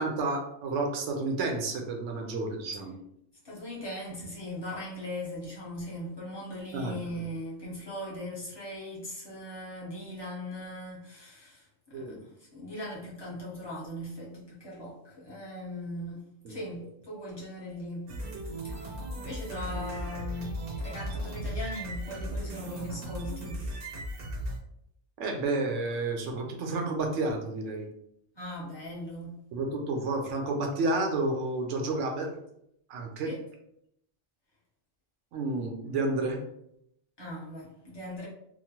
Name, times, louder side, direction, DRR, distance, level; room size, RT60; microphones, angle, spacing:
voice 1, 0.0-3.0 6.7-6.9 11.9-12.2 16.4-16.6 25.2-27.9 29.5-32.3 32.9-33.3 35.3-36.4, right 2 dB, 90° right, 3 dB, 0.9 m, -30 dB
voice 2, 3.4-18.1 18.6-23.6 28.3-29.4 33.2-33.4 37.2-38.3, left 1 dB, 25° left, -6 dB, 0.9 m, -39 dB
sound 1, 18.1-24.6, right 1 dB, 60° right, 0.7 m, -36 dB
2.9 x 2.1 x 2.8 m, 0.75 s
omnidirectional pair, 1.2 m